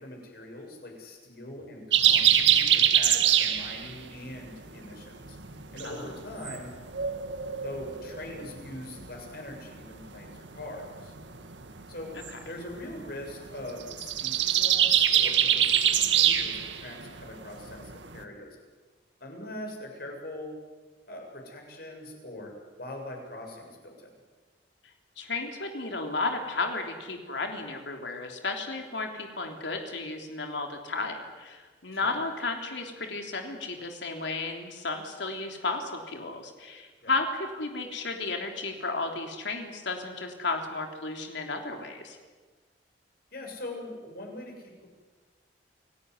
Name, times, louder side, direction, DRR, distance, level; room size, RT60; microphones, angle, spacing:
voice 1, 0.0-5.4 5.7-6.7 7.6-11.1 11.9-12.1 12.4-18.6 19.2-20.5 21.1-24.1 31.9-32.2 37.0-37.1 43.3-44.9, left 1 dB, 55° left, 2 dB, 7.4 m, -42 dB
sound 1, 1.9-4.2 4.5-4.9 5.2-9.4 9.8-9.9 10.3-18.2, right 10 dB, 90° right, 1.9 m, -24 dB
voice 2, 25.2-42.2, left 3 dB, 80° left, 3 dB, 3.4 m, -33 dB
29.0 x 18.5 x 9.8 m, 1.4 s
head